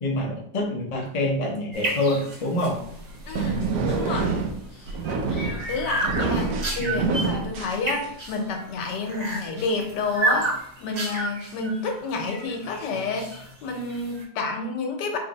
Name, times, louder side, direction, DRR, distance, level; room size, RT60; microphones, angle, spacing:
voice 1, 0.0-2.8 6.8-7.2, left 1 dB, 55° left, -1 dB, 0.4 m, -26 dB
sound 1, 1.7-14.2, right 2 dB, 45° right, 0.5 m, -32 dB
sound 2, 2.7-8.4, right 4 dB, 70° right, 1.0 m, -27 dB
voice 2, 3.3-4.3 4.7-4.9 5.3-15.2, left 3 dB, 85° left, 3 dB, 1.3 m, -30 dB
3.2 x 2.6 x 3.9 m, 0.68 s
omnidirectional pair, 1.8 m